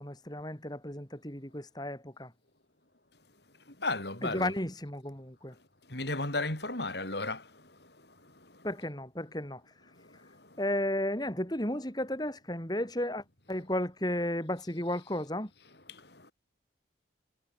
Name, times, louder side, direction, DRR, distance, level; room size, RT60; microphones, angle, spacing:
voice 1, 0.0-2.3 4.2-5.5 8.6-9.6 10.6-15.5, left 1 dB, 20° left, 4.8 m, -33 dB
voice 2, 3.7-4.5 5.9-8.7 9.9-10.6 15.9-16.3, left 2 dB, 65° left, 6.0 m, -36 dB
head